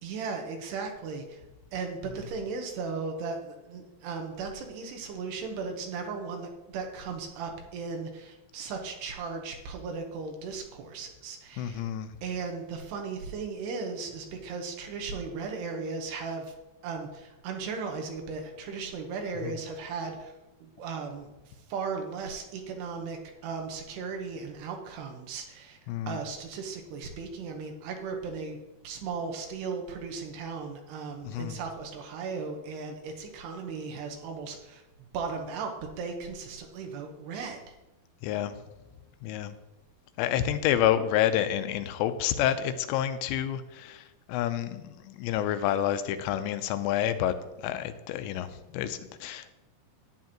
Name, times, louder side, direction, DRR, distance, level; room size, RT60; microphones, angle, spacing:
voice 1, 0.0-1.4 1.7-11.8 12.2-16.5 16.8-20.3 20.6-21.3 21.7-25.8 26.1-28.6 28.8-34.8 35.1-37.7, right 4 dB, 75° right, 3 dB, 3.1 m, -36 dB
voice 2, 11.6-12.1 25.9-26.2 31.2-31.5 38.2-38.6 39.2-39.5 40.2-44.0 44.3-49.5, left 11 dB, 90° left, 10 dB, 2.9 m, -29 dB
11.5 x 9.5 x 2.9 m, 1.0 s
omnidirectional pair, 5.0 m